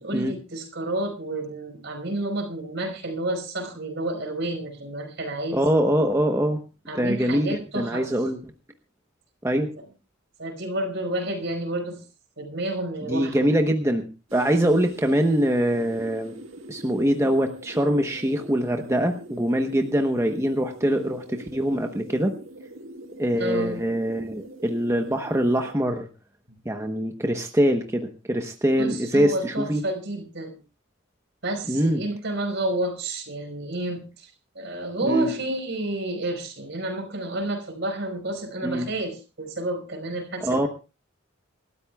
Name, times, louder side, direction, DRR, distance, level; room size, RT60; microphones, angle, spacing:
voice 1, 0.0-5.6 6.9-8.1 10.4-12.0 12.4-13.5 23.3-23.8 28.8-30.6 31.4-34.3 34.5-40.7, right 1 dB, 60° right, 4 dB, 5.1 m, -30 dB
voice 2, 5.5-6.6 6.9-8.4 9.4-9.7 13.0-14.1 14.3-16.3 16.7-22.3 23.2-26.1 26.6-29.8 31.7-32.0 35.0-35.3 38.6-38.9 40.4-40.7, equal, 15° right, 4 dB, 1.0 m, -23 dB
sound 1, 14.3-25.7, right 1 dB, 80° right, 1.8 m, -43 dB
28.0 x 13.0 x 2.3 m, 0.31 s
head